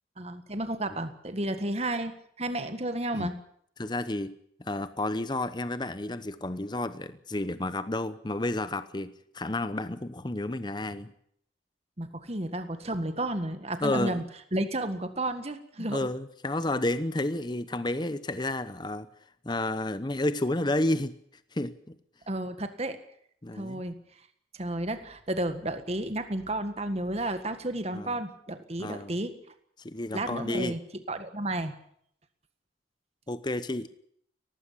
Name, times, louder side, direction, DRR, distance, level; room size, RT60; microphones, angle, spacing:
voice 1, 0.2-2.1 2.4-3.4 12.0-14.2 14.5-16.0 22.3-23.0 23.5-23.9 24.6-29.3 30.1-30.8 31.1-31.7, right 1 dB, 35° right, 9 dB, 1.7 m, -32 dB
voice 2, 3.8-11.1 13.8-14.2 15.8-19.1 19.4-21.1 21.5-21.9 23.4-23.8 27.9-28.2 28.8-29.1 29.8-30.8 33.3-33.9, left 1 dB, 25° left, 13 dB, 0.9 m, -31 dB
18.5 x 15.5 x 9.9 m, 0.68 s
head